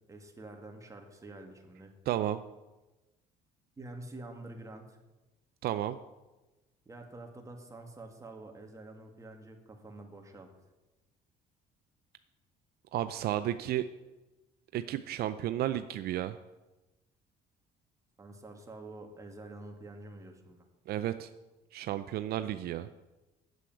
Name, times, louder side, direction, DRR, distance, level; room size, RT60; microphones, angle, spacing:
voice 1, 0.0-1.9 3.8-5.0 6.9-10.5 18.2-20.7, right 2 dB, 20° right, 3 dB, 1.9 m, -47 dB
voice 2, 2.1-2.4 5.6-6.0 12.9-13.9 14.7-16.4 20.9-21.3 21.7-22.9, right 12 dB, 65° right, 11 dB, 0.5 m, -32 dB
8.2 x 7.8 x 8.9 m, 1.1 s
cardioid pair, 110°, 17 cm